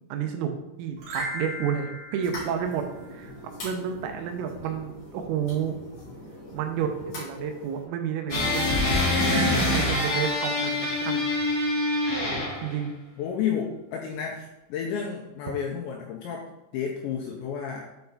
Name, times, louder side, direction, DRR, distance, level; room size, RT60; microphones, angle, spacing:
voice 1, 0.1-0.5 0.8-2.8 3.1-3.3 3.6-5.8 6.5-8.8 9.2-11.3 12.6-12.9, right 8 dB, 85° right, 5 dB, 3.5 m, -30 dB
sound 1, 1.0-3.5 9.2-11.8, right 1 dB, 60° right, 4.0 m, -38 dB
sound 2, 2.2-7.8, left 1 dB, 45° left, 2.3 m, -41 dB
sound 3, 8.3-12.8, left 2 dB, 65° left, 0.9 m, -25 dB
voice 2, 13.2-16.5 16.7-17.9, left 7 dB, 80° left, 0 dB, 2.6 m, -31 dB
8.6 x 4.6 x 4.0 m, 0.96 s
omnidirectional pair, 6.0 m